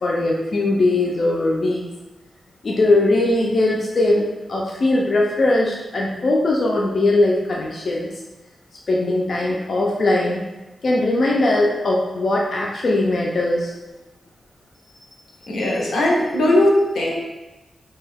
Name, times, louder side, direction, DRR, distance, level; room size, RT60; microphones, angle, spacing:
voice 1, 0.0-1.8 2.6-8.1 8.9-10.4 10.8-13.7, left 2 dB, 45° left, -2 dB, 0.3 m, -20 dB
voice 2, 15.5-17.1, left 1 dB, 85° left, -2 dB, 0.7 m, -18 dB
2.6 x 2.2 x 3.3 m, 1.1 s
wide cardioid pair, 175°, 0 cm